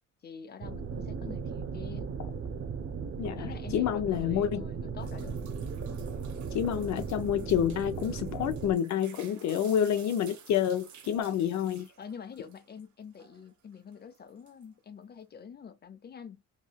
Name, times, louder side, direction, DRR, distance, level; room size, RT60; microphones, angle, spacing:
voice 1, 0.2-2.1 3.3-5.4 12.0-16.4, left 6 dB, 35° left, 0.7 m, -46 dB
sound 1, 0.6-8.7, right 5 dB, 50° right, 0.6 m, -37 dB
voice 2, 3.2-4.7 6.5-11.9, left 9 dB, 65° left, 0.5 m, -28 dB
sound 2, 5.0-12.8 13.1-14.8, right 7 dB, 70° right, 1.1 m, -54 dB
3.2 x 2.7 x 2.2 m
cardioid pair, 90°, 30 cm